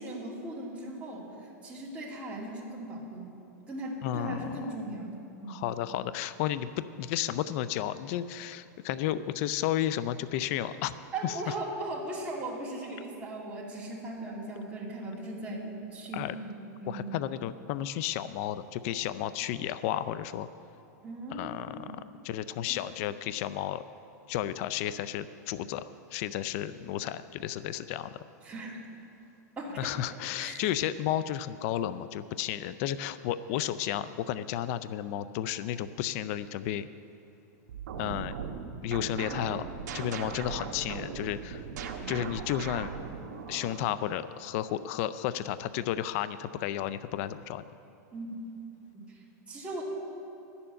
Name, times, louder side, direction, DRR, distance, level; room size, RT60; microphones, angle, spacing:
voice 1, 0.0-3.3 3.7-5.6 11.1-17.1 21.0-22.0 22.7-22.8 28.4-28.8 29.6-29.9 30.4-30.6 48.1-48.4 48.9-49.8, right 1 dB, 10° right, -6 dB, 2.5 m, -38 dB
voice 2, 4.0-4.7 5.5-10.9 11.2-11.3 16.1-16.3 16.9-20.5 21.3-21.9 22.2-23.8 24.3-28.2 29.8-36.9 38.0-38.4 38.8-39.6 39.9-41.6 42.1-42.9 43.5-47.6, left 11 dB, 50° left, 14 dB, 0.4 m, -32 dB
sound 1, 37.7-43.9, right 6 dB, 75° right, 1.2 m, -39 dB
11.5 x 7.0 x 8.7 m, 2.8 s
supercardioid pair, 135°, 10 cm